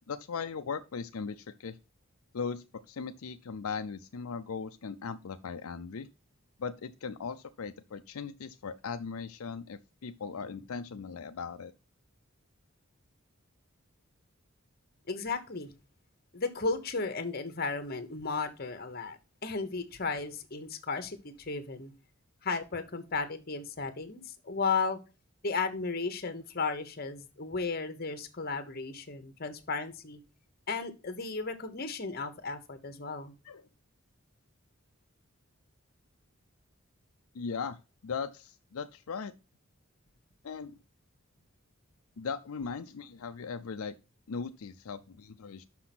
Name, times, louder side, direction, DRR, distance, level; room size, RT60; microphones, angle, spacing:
voice 1, 0.0-1.8 2.3-6.1 6.6-11.7 33.4-33.6 37.3-37.8 38.0-39.3 40.4-40.8 42.2-44.0 44.3-45.6, left 5 dB, 85° left, 8 dB, 0.5 m, -38 dB
voice 2, 15.1-15.7 16.3-21.9 22.4-25.0 25.4-30.2 30.7-33.3, left 4 dB, 45° left, 9 dB, 1.1 m, -34 dB
6.1 x 5.9 x 6.0 m, 0.31 s
head